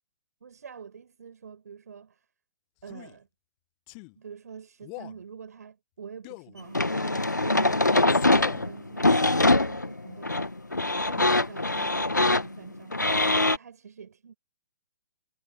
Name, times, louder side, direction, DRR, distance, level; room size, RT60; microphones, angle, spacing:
voice 1, 0.4-2.3 2.8-3.3 4.2-10.5 11.1-13.0 13.3-14.3, right 6 dB, 65° right, 7.5 m, -46 dB
Male speech man speaking, 2.8-3.2 3.9-4.2 4.8-5.2 6.2-6.6 7.9-8.7, left 39 dB, 30° left, 1.5 m, -43 dB
sound 1, 6.7-13.6, left 2 dB, 85° left, 1.3 m, -23 dB
figure-of-eight pair, 120°, 10 cm